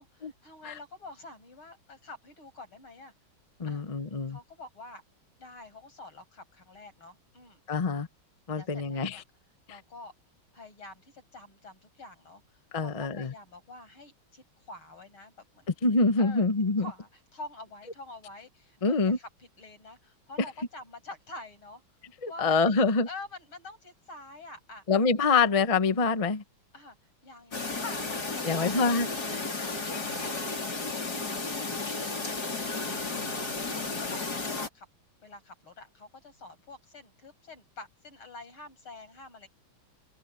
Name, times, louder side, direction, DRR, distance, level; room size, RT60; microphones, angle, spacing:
voice 1, 0.0-3.1 3.7-3.8 4.3-5.0 5.4-7.6 8.5-9.2 9.7-10.1 10.5-15.8 16.2-16.5 16.8-21.8 22.3-22.8 23.1-24.8 26.7-27.0 27.2-29.0 29.4-31.4 31.7-34.9 35.2-39.5, left 2 dB, 90° left, 7.6 m, -47 dB
voice 2, 3.6-4.4 7.7-8.1 8.5-9.2 12.7-13.3 15.8-16.8 18.8-19.2 22.2-23.1 24.9-26.4 28.4-29.1, left 4 dB, 25° left, 0.7 m, -25 dB
Chirp tweet, 27.5-34.7, left 3 dB, 50° left, 4.4 m, -33 dB
omnidirectional pair, 2.3 m